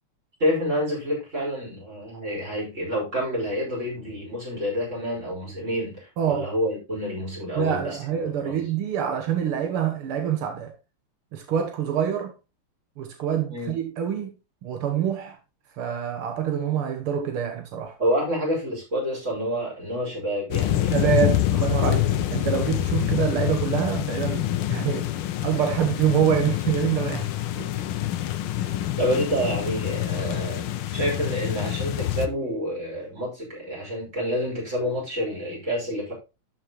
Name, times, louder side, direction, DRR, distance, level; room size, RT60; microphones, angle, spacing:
voice 1, 0.4-8.6 13.5-13.7 18.0-21.0 29.0-30.6 30.9-36.1, equal, 30° right, 6.0 m, -28 dB
voice 2, 6.2-6.5 7.6-10.7 11.3-12.3 13.0-14.4 14.6-15.4 15.8-17.9 20.9-25.1 25.4-27.3 27.6-27.7 28.6-28.7, right 9 dB, 85° right, 2.0 m, -26 dB
sound 1, 20.5-32.3, left 13 dB, 80° left, 1.6 m, -26 dB
12.5 x 6.3 x 3.1 m
omnidirectional pair, 2.3 m